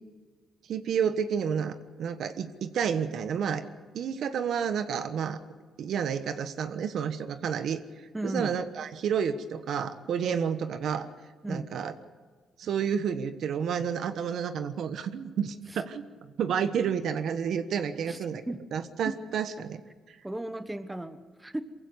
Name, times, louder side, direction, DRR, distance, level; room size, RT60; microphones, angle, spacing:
voice 1, 0.7-3.6 3.9-5.4 5.8-11.1 11.5-11.9 12.6-16.1 16.4-18.4 18.7-19.8, right 7 dB, 70° right, 10 dB, 1.2 m, -30 dB
voice 2, 8.1-8.5 11.4-11.7 15.7-15.8 18.1-18.6 19.0-19.4 20.2-21.6, right 1 dB, 10° right, 10 dB, 1.3 m, -36 dB
23.0 x 16.0 x 8.1 m, 1.4 s
cardioid pair, 90°, 0 cm